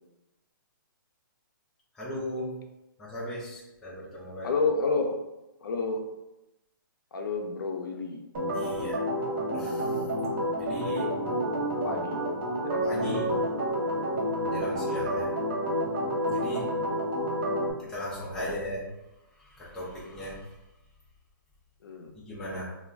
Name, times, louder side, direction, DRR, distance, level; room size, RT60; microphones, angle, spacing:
voice 1, 2.0-2.5 3.0-4.5 8.5-9.0 9.5-10.0 10.6-11.1 12.8-13.3 14.4-15.3 16.3-16.7 17.8-18.8 19.5-20.5 22.1-22.7, left 1 dB, 5° left, -7 dB, 0.4 m, -37 dB
voice 2, 4.4-5.2 5.6-6.0 7.1-8.2 10.6-10.7 11.5-12.2 12.6-13.3 18.4-18.5 21.8-22.1, left 3 dB, 70° left, 4 dB, 0.5 m, -31 dB
Organ, 8.3-17.7, equal, 35° right, 0.7 m, -29 dB
2.2 x 2.1 x 3.5 m, 0.94 s
hypercardioid pair, 165°, 12 cm